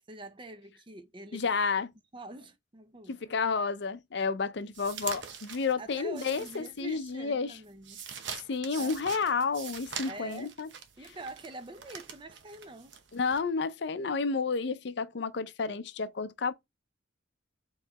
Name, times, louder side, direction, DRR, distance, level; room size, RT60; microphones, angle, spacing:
voice 1, 0.1-1.5 2.1-3.2 5.8-8.0 8.8-9.0 10.0-10.6 11.0-13.0, right 2 dB, 25° right, 0.5 m, -45 dB
voice 2, 1.3-1.9 3.1-7.6 8.5-10.7 13.1-16.5, left 4 dB, 60° left, 0.5 m, -31 dB
sound 1, 4.7-7.1 7.5-13.4, right 7 dB, 65° right, 0.8 m, -43 dB
4.6 x 3.1 x 3.6 m
head